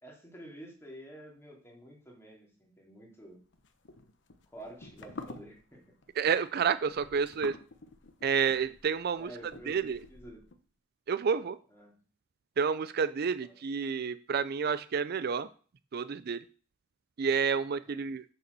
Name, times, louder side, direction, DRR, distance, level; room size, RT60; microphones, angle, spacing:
voice 1, 0.0-3.4 4.5-5.9 9.2-10.4 11.7-11.9 13.4-13.6 17.9-18.0, right 1 dB, 15° left, -2 dB, 3.2 m, -50 dB
sound 1, 3.5-10.6, left 3 dB, 65° left, 1.0 m, -49 dB
voice 2, 6.2-7.6 8.2-9.3 9.7-10.0 11.1-11.6 12.6-15.5 15.9-16.4 17.2-18.2, right 6 dB, 55° right, 15 dB, 0.4 m, -29 dB
6.9 x 6.7 x 6.7 m, 0.41 s
head